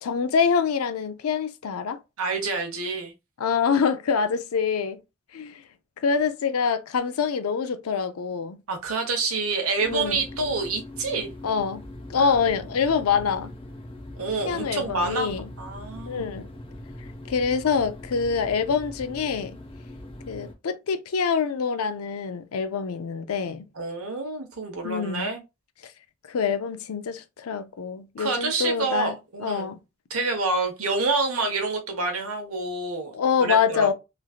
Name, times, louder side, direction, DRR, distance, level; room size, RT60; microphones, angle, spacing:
voice 1, 0.0-2.0 3.4-5.0 5.3-5.6 6.0-8.6 9.9-10.2 11.4-11.8 12.1-13.5 14.4-15.5 16.1-16.5 17.3-19.6 20.3-23.6 24.8-25.3 25.8-25.9 26.3-29.8 33.1-33.9, left 6 dB, 90° left, 0.5 m, -25 dB
voice 2, 2.2-3.1 8.7-11.3 12.2-12.3 14.2-16.3 23.7-25.4 28.2-29.8 30.1-33.1 33.4-33.9, right 3 dB, 80° right, 1.0 m, -28 dB
sound 1, 9.8-20.5, left 1 dB, 25° left, 0.8 m, -41 dB
3.1 x 2.6 x 2.3 m
head